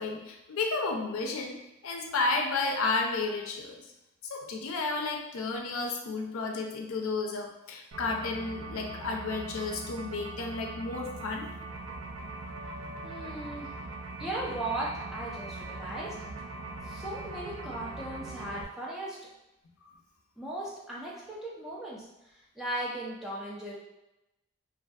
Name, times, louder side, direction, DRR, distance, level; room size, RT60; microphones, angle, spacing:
voice 1, 0.0-1.6 1.8-3.8 4.2-11.5 19.9-20.0, left 3 dB, 90° left, 2 dB, 0.4 m, -32 dB
sound 1, 7.9-18.6, right 3 dB, 75° right, 0.3 m, -41 dB
voice 2, 13.0-13.7 14.2-16.2 16.8-19.2 20.4-23.8, right 1 dB, ahead, -6 dB, 0.4 m, -37 dB
2.5 x 2.4 x 2.2 m, 0.93 s
head